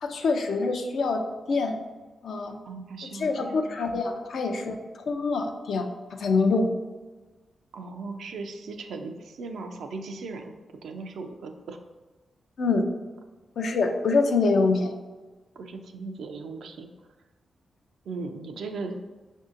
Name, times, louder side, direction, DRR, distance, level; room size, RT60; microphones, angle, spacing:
voice 1, 0.0-1.2 1.5-1.8 2.2-2.6 3.1-4.8 5.1-5.9 6.2-6.7 12.6-12.9 13.6-14.9, left 3 dB, 75° left, 4 dB, 0.4 m, -25 dB
voice 2, 2.7-3.6 7.7-10.5 10.8-11.8 15.6-16.9 18.1-19.0, right 3 dB, 80° right, 5 dB, 0.3 m, -37 dB
5.4 x 2.7 x 2.5 m, 1.3 s
supercardioid pair, 40°, 0 cm